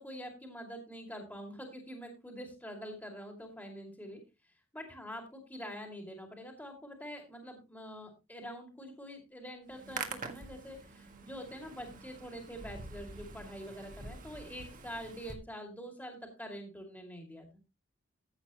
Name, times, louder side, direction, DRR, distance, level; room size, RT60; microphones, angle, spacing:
voice 1, 0.0-4.2 4.7-17.5, equal, 10° left, 3 dB, 2.4 m, -45 dB
Hands, 9.7-15.3, right 4 dB, 40° right, 1.7 m, -46 dB
14.5 x 8.5 x 3.0 m, 0.26 s
head